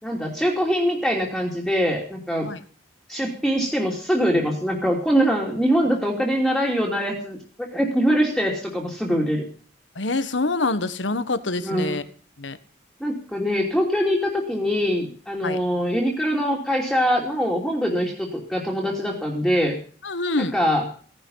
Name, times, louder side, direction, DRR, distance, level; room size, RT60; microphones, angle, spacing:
voice 1, 0.0-2.5 3.1-9.5 11.6-12.0 13.0-19.8 20.4-20.8, equal, ahead, -1 dB, 2.9 m, -23 dB
voice 2, 9.9-12.0 12.4-12.6 15.4-15.6 20.0-20.5, left 3 dB, 80° left, 13 dB, 1.4 m, -26 dB
17.0 x 12.0 x 5.6 m, 0.43 s
head